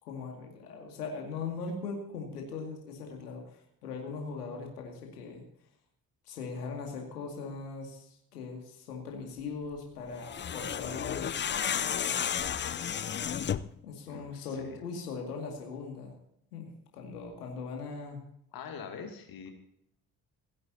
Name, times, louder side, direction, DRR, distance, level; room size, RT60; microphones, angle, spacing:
voice 1, 0.1-5.4 6.2-11.7 13.8-16.1 16.5-18.2, left 4 dB, 75° left, 1 dB, 2.4 m, -40 dB
sound 1, 10.2-13.8, left 8 dB, 25° left, 0.6 m, -32 dB
voice 2, 12.7-13.0 14.1-14.8 18.5-19.5, left 6 dB, 50° left, 4 dB, 2.5 m, -44 dB
28.0 x 11.0 x 2.8 m, 0.75 s
figure-of-eight pair, 45°, 46 cm